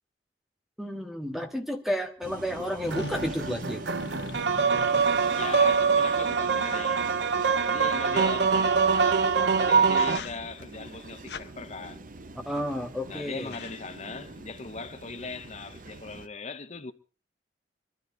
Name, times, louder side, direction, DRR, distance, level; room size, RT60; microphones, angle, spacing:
voice 1, 0.8-3.8 12.4-13.5, equal, ahead, 1.7 m, -31 dB
sound 1, 2.2-16.3, right 2 dB, 50° right, 0.9 m, -44 dB
sound 2, 2.8-5.7 6.6-7.9 9.3-9.5 9.9-10.6 11.3-11.5 12.5-12.9 13.1-13.2 13.4-13.8, left 3 dB, 70° left, 1.0 m, -42 dB
sound 3, 2.9-10.2, right 5 dB, 80° right, 0.8 m, -24 dB
voice 2, 5.4-7.0 7.7-9.3 9.6-12.1 13.1-16.9, left 4 dB, 40° left, 0.9 m, -39 dB
22.5 x 14.0 x 3.9 m
head